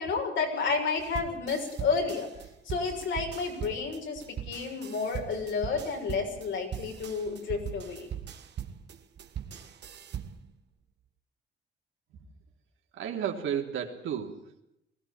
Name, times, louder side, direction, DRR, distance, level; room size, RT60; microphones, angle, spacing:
voice 1, 0.0-2.3 2.6-8.1, left 5 dB, 70° left, 2 dB, 6.7 m, -31 dB
sound 1, 1.0-10.5, right 9 dB, 60° right, 1.9 m, -40 dB
voice 2, 12.9-14.6, right 8 dB, 80° right, 2 dB, 3.5 m, -33 dB
21.0 x 15.5 x 8.9 m, 0.80 s
cardioid pair, 90°, 20 cm